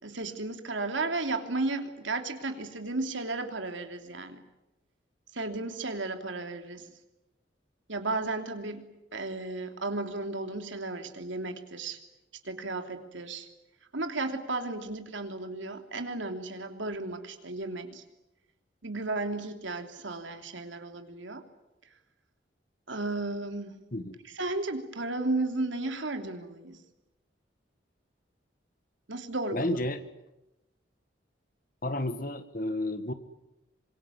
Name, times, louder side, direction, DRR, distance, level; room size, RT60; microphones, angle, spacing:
voice 1, 0.0-4.4 5.3-6.9 7.9-8.8 9.1-12.0 12.4-13.5 13.9-18.0 18.8-21.4 22.9-23.7 24.3-26.8 29.1-29.8, right 2 dB, 80° right, 6 dB, 3.0 m, -34 dB
voice 2, 29.5-30.0 31.8-33.1, left 1 dB, 45° left, 11 dB, 1.7 m, -31 dB
26.0 x 23.0 x 9.8 m, 0.96 s
head